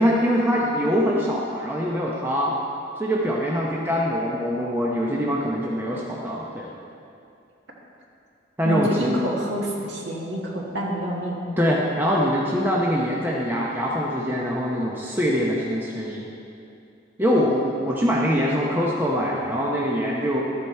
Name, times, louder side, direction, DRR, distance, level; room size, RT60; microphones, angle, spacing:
voice 1, 0.0-2.6 3.0-6.7 8.6-9.2 11.6-16.3 17.2-20.4, equal, 10° right, -4 dB, 0.8 m, -23 dB
voice 2, 8.6-11.6, right 1 dB, 85° right, -3 dB, 1.8 m, -27 dB
12.0 x 8.1 x 4.4 m, 2.5 s
head